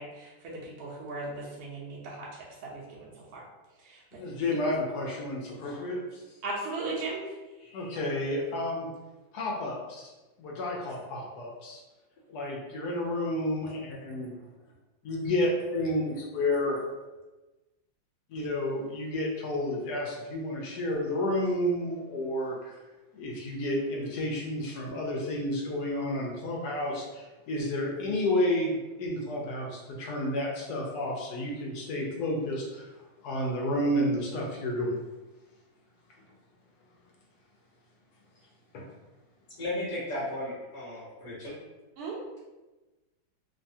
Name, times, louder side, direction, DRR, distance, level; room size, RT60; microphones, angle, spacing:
voice 1, 0.0-3.5 3.8-4.2 6.4-7.2 42.0-42.2, right 3 dB, 70° right, -4 dB, 0.9 m, -37 dB
voice 2, 4.1-6.3 7.6-8.9 9.3-10.1 10.4-11.8 12.3-14.3 15.0-16.8 18.3-22.8 23.1-32.9 33.2-34.9 38.7-38.9, left 1 dB, 75° left, -2 dB, 0.9 m, -31 dB
voice 3, 39.6-41.5, left 1 dB, 55° left, -8 dB, 1.0 m, -35 dB
3.1 x 2.2 x 2.6 m, 1.1 s
omnidirectional pair, 2.1 m